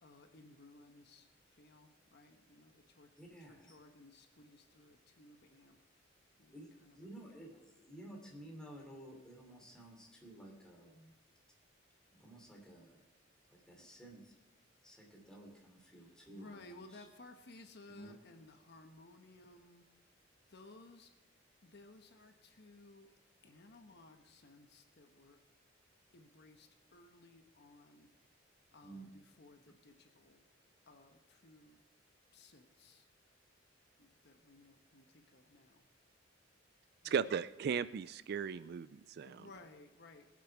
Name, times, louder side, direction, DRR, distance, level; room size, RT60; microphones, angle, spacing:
voice 1, 0.0-3.1 3.5-6.1 6.4-7.0 7.2-7.5 15.8-19.9 20.5-21.1 21.6-23.1 23.4-25.4 26.1-28.4 28.7-30.4 30.9-31.8 32.3-33.1 34.0-35.8 37.0-37.3 39.2-40.3, left 2 dB, 60° left, 6 dB, 1.1 m, -59 dB
voice 2, 3.2-3.8 6.5-11.1 12.1-13.0 13.5-14.3 14.8-17.1 17.9-18.2 28.8-29.1, right 1 dB, 5° left, -2 dB, 3.0 m, -54 dB
voice 3, 37.1-39.5, right 7 dB, 55° right, 16 dB, 0.3 m, -36 dB
20.5 x 7.5 x 4.7 m, 1.1 s
head